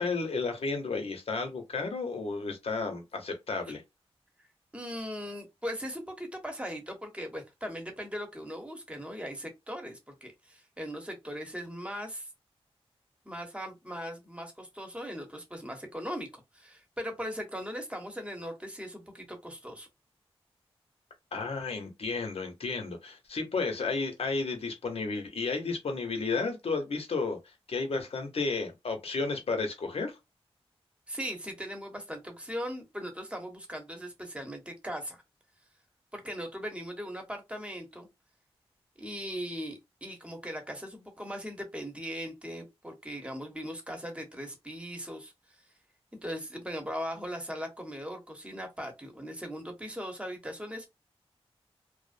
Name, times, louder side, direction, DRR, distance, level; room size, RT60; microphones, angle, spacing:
voice 1, 0.0-3.8 21.3-30.2, left 4 dB, 70° left, 0.8 m, -32 dB
voice 2, 4.7-12.3 13.2-19.9 31.1-35.2 36.1-38.1 39.0-45.3 46.2-50.9, equal, 10° right, 0.9 m, -39 dB
2.4 x 2.0 x 2.5 m
cardioid pair, 60°, 10 cm